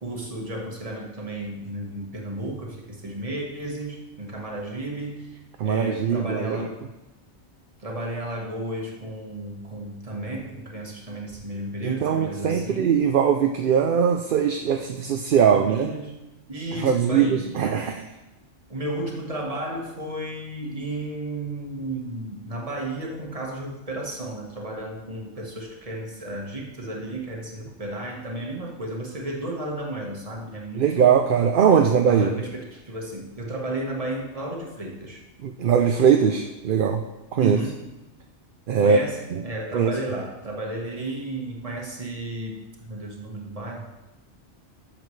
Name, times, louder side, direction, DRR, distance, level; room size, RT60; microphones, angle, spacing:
voice 1, 0.0-6.8 7.8-13.0 15.5-16.2 16.5-17.8 18.7-31.2 32.1-35.2 37.4-37.9 38.8-43.9, right 1 dB, 30° right, 0 dB, 1.5 m, -33 dB
voice 2, 5.6-6.7 11.8-15.9 16.8-18.1 30.8-32.3 35.4-37.0 37.3-37.6 38.7-39.0 39.3-39.4 39.7-39.9, right 7 dB, 55° right, 5 dB, 0.7 m, -21 dB
13.5 x 6.9 x 3.2 m, 1.0 s
omnidirectional pair, 1.2 m